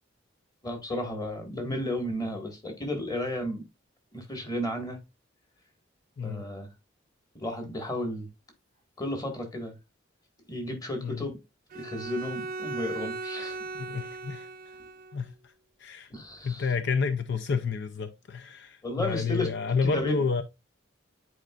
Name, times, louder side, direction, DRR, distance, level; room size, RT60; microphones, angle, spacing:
voice 1, 0.6-3.6 4.1-5.0 6.2-6.7 7.4-8.3 9.0-9.7 10.5-11.4 11.7-13.6 16.1-16.7 18.8-20.3, left 1 dB, 20° left, 1.7 m, -33 dB
Bowed string instrument, 11.7-15.2, right 3 dB, 50° right, 0.6 m, -37 dB
voice 2, 13.8-14.5 15.1-15.3 15.8-16.1 16.4-20.4, left 5 dB, 60° left, 0.5 m, -30 dB
9.0 x 4.5 x 2.4 m
head